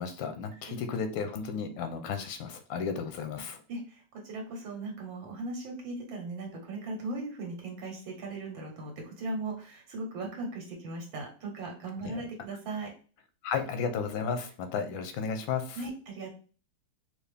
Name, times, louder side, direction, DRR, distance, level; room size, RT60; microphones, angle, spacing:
voice 1, 0.0-3.6 12.0-12.1 13.4-15.8, left 6 dB, 85° left, 8 dB, 1.5 m, -33 dB
voice 2, 3.7-12.9 15.8-16.3, right 2 dB, 85° right, 1 dB, 1.8 m, -38 dB
4.6 x 2.5 x 3.3 m, 0.38 s
omnidirectional pair, 2.0 m